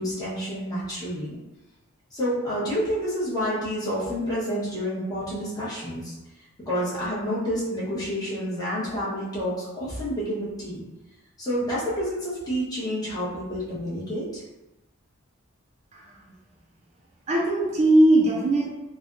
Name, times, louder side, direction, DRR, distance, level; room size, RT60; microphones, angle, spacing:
voice 1, 0.0-1.4 2.1-6.1 6.7-10.8 11.4-14.4, equal, 20° left, -9 dB, 1.1 m, -29 dB
voice 2, 17.3-18.7, right 1 dB, 35° right, -2 dB, 0.4 m, -20 dB
3.4 x 2.2 x 2.6 m, 1.0 s
head